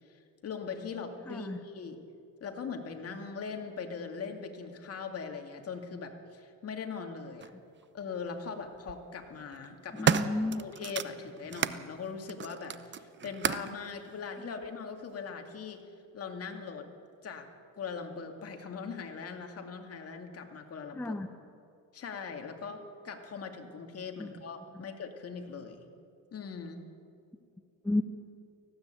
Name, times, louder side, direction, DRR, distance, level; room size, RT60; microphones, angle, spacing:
voice 1, 0.4-2.0 2.4-7.5 7.9-10.2 10.6-15.8 16.1-16.9 17.2-17.5 17.8-21.2 21.9-25.9 26.3-26.8, left 5 dB, 40° left, 4 dB, 2.4 m, -40 dB
voice 2, 1.3-1.6 10.0-10.6 20.9-21.3 24.2-24.3 27.8-28.0, left 2 dB, 5° left, 6 dB, 0.8 m, -31 dB
sound 1, 7.4-7.5 8.6-9.0 9.5-11.8 12.3-13.8 14.6-14.7, right 8 dB, 30° right, 0.7 m, -32 dB
18.5 x 15.5 x 9.0 m, 2.4 s
cardioid pair, 130°, 36 cm